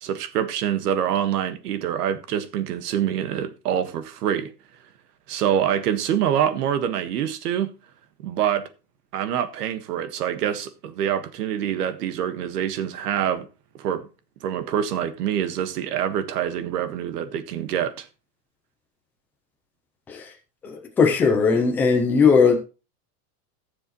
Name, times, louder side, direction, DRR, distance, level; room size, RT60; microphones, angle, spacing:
voice 1, 0.0-4.5 5.3-7.7 8.2-8.6 9.1-13.5 13.8-14.0 14.4-18.1, right 9 dB, 75° right, 1.6 m, -25 dB
voice 2, 20.6-22.6, left 5 dB, 5° left, 0.4 m, -18 dB
16.0 x 7.1 x 3.0 m
supercardioid pair, 170°, 48 cm